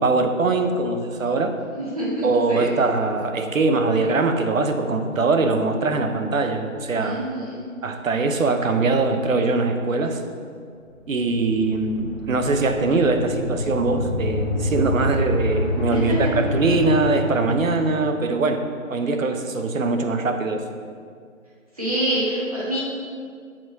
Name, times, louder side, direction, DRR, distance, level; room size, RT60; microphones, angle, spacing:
voice 1, 0.0-1.6 2.2-7.2 7.8-10.2 11.1-18.6 18.9-20.6, right 3 dB, 70° right, 6 dB, 0.8 m, -22 dB
voice 2, 1.8-2.7 7.0-7.6 15.9-16.2 21.8-22.8, right 1 dB, 25° right, -8 dB, 1.3 m, -26 dB
sound 1, 11.0-17.9, left 1 dB, 50° left, 1.4 m, -27 dB
7.2 x 4.5 x 4.0 m, 2.2 s
figure-of-eight pair, 175°, 41 cm